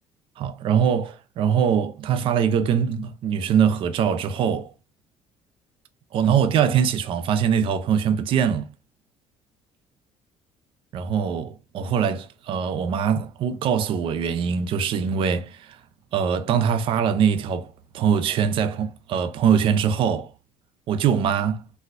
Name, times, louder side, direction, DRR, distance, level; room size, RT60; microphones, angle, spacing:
voice 1, 0.4-4.7 6.1-8.7 10.9-15.8 16.1-20.3 20.9-21.6, right 7 dB, 45° right, 0.4 m, -22 dB
4.1 x 2.2 x 2.5 m
cardioid pair, 160°, 12 cm